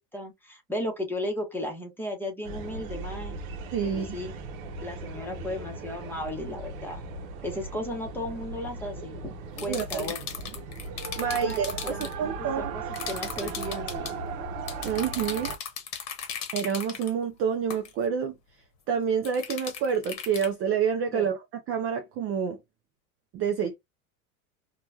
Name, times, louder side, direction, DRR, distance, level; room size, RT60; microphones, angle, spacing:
voice 1, 0.0-3.4 3.9-4.4 4.8-7.0 7.4-10.2 11.3-14.2 21.1-21.3, left 1 dB, 5° left, 0.9 m, -35 dB
sound 1, 2.4-15.6, right 4 dB, 70° right, 0.8 m, -37 dB
voice 2, 3.7-4.1 9.7-10.1 11.2-12.8 14.8-15.5 16.5-18.3 18.9-21.4 21.7-22.6 23.3-23.8, right 7 dB, 30° right, 0.5 m, -28 dB
sound 2, 9.6-12.1 12.9-14.1 14.7-17.1 17.7-17.9 19.2-20.5, left 7 dB, 40° left, 1.0 m, -37 dB
2.9 x 2.3 x 2.3 m
supercardioid pair, 120°, 43 cm